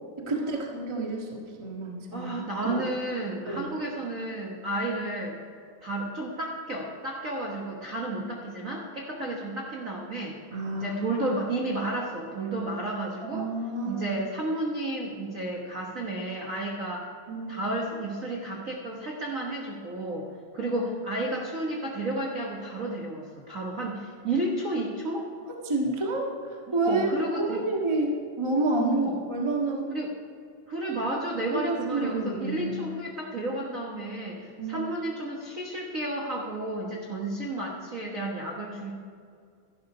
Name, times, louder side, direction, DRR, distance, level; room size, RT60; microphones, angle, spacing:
voice 1, 0.2-2.3 2.6-2.9 3.5-3.7 10.5-11.0 13.3-14.1 17.3-17.6 25.6-29.9 31.5-32.8 34.6-34.9, right 2 dB, 40° right, 0 dB, 0.4 m, -29 dB
voice 2, 2.1-5.4 5.8-10.4 10.7-13.5 13.8-17.1 17.5-20.3 20.5-25.3 26.7-27.6 28.9-29.2 29.9-30.1 30.7-38.9, right 1 dB, 70° right, -1 dB, 0.7 m, -32 dB
13.0 x 11.5 x 4.9 m, 2.2 s
omnidirectional pair, 3.6 m